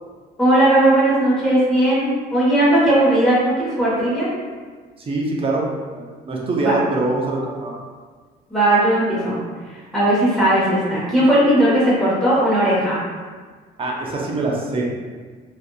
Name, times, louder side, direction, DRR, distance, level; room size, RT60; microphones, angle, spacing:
voice 1, 0.4-4.3 6.6-6.7 8.5-9.4 9.9-13.0, right 1 dB, ahead, -10 dB, 1.1 m, -17 dB
voice 2, 5.0-7.7 13.8-14.9, right 2 dB, 35° right, -2 dB, 0.5 m, -23 dB
2.6 x 2.5 x 2.3 m, 1.5 s
cardioid pair, 110°, 17 cm